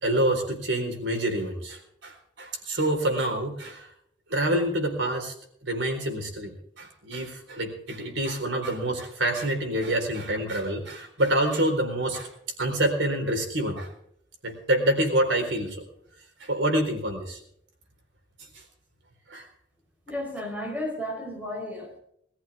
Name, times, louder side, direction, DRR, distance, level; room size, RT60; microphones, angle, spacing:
voice 1, 0.0-3.9 4.3-5.3 5.6-12.3 12.6-13.9 14.4-15.8 16.4-17.4 19.3-19.5, right 1 dB, 85° right, 3 dB, 4.1 m, -27 dB
voice 2, 20.1-22.0, left 1 dB, 10° right, 1 dB, 4.3 m, -33 dB
22.0 x 14.5 x 3.5 m, 0.70 s
head